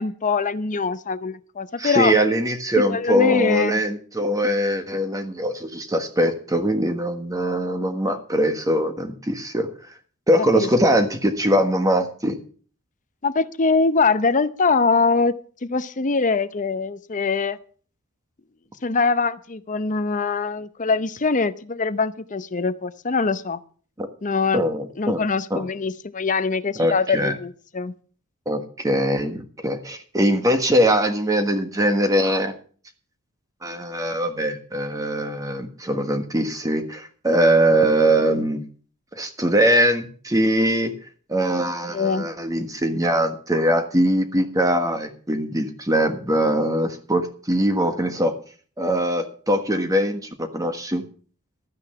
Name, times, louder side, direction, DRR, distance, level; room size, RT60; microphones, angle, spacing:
voice 1, 0.0-2.1 2.9-3.8 10.5-10.7 13.2-15.3 15.6-17.6 18.8-23.6 24.2-24.7 25.0-27.9 41.9-42.3, left 4 dB, 35° left, 14 dB, 0.7 m, -23 dB
voice 2, 1.8-9.9 10.3-12.4 24.0-24.1 24.5-25.7 26.8-27.3 28.4-32.5 33.6-38.6 39.1-40.9 41.3-48.3 48.8-51.0, equal, 15° right, 7 dB, 1.4 m, -22 dB
13.0 x 9.6 x 5.7 m, 0.43 s
head